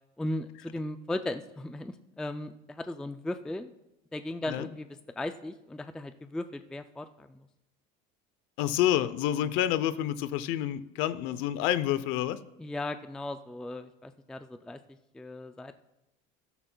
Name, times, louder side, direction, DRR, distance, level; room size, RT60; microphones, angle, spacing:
voice 1, 0.2-3.7 4.1-4.9 5.2-7.5 12.6-15.7, left 1 dB, 5° left, 9 dB, 0.3 m, -37 dB
voice 2, 8.6-12.4, left 12 dB, 70° left, 15 dB, 0.7 m, -28 dB
15.0 x 13.0 x 2.3 m, 0.95 s
cardioid pair, 135°, 21 cm